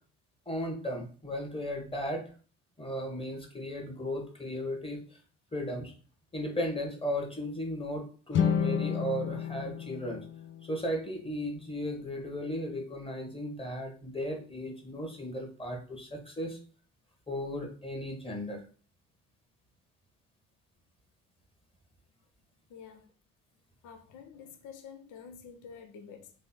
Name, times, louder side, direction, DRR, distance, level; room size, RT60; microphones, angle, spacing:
voice 1, 0.5-2.3 2.8-5.2 5.5-5.9 6.3-10.2 10.6-16.6 17.3-18.6, equal, 15° left, 1.4 m, -35 dB
sound 1, 8.3-11.6, left 7 dB, 30° left, 0.5 m, -32 dB
voice 2, 22.7-23.1 23.8-26.3, left 6 dB, 50° left, 0.9 m, -48 dB
3.5 x 3.3 x 4.3 m
figure-of-eight pair, 55°, 39 cm